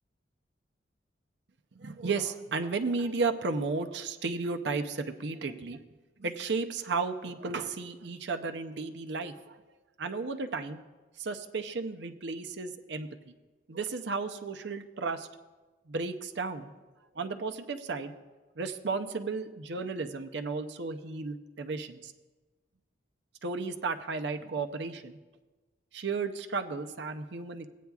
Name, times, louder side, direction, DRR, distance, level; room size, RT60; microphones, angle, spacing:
voice 1, 1.7-5.8 6.2-9.6 10.0-10.8 11.2-13.3 13.7-15.3 15.9-16.7 17.1-18.2 18.6-22.1 23.4-25.2 25.9-27.7, right 4 dB, 65° right, 8 dB, 0.6 m, -34 dB
17.0 x 9.2 x 2.3 m, 1.2 s
head